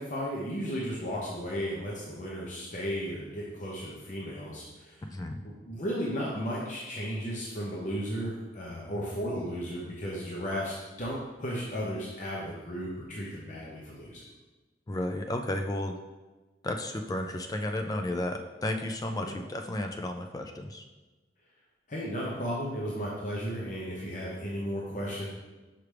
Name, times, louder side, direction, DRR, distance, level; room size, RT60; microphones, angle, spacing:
voice 1, 0.0-5.1 5.7-14.2 19.2-19.4 21.9-25.3, equal, 45° left, -4 dB, 0.8 m, -34 dB
voice 2, 5.0-5.4 14.9-16.0 16.6-20.8, left 1 dB, 20° left, 4 dB, 0.3 m, -33 dB
5.8 x 4.8 x 3.3 m, 1.2 s
head